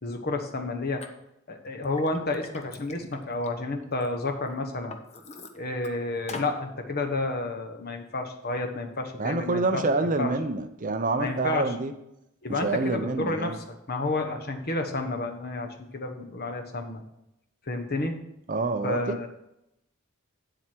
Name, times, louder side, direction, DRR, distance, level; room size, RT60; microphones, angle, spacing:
voice 1, 0.0-1.0 1.5-5.0 5.5-9.8 10.2-10.3 11.2-11.7 12.4-13.6 13.9-17.0 17.7-18.1 18.8-19.3, left 2 dB, 45° left, 4 dB, 1.2 m, -30 dB
Liquid, 1.0-1.1 1.6-4.1 4.5-5.9 6.3-6.6, left 3 dB, 30° left, 0.8 m, -43 dB
voice 2, 9.1-11.9 12.6-13.6 18.5-19.3, right 3 dB, 40° right, 9 dB, 0.6 m, -27 dB
8.7 x 7.7 x 4.5 m, 0.84 s
head